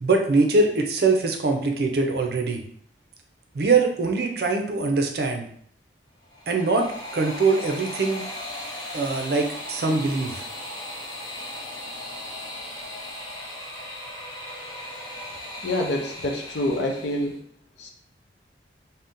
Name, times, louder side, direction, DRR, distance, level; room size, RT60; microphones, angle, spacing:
voice 1, 0.0-2.6 3.5-5.5 6.5-8.3 8.9-10.4, right 3 dB, 60° right, 3 dB, 0.5 m, -23 dB
sound 1, 6.2-17.4, left 1 dB, 25° left, 0.5 m, -37 dB
voice 2, 15.6-17.4 17.8-17.9, left 1 dB, 80° left, 3 dB, 0.5 m, -26 dB
2.7 x 2.1 x 3.6 m, 0.63 s
head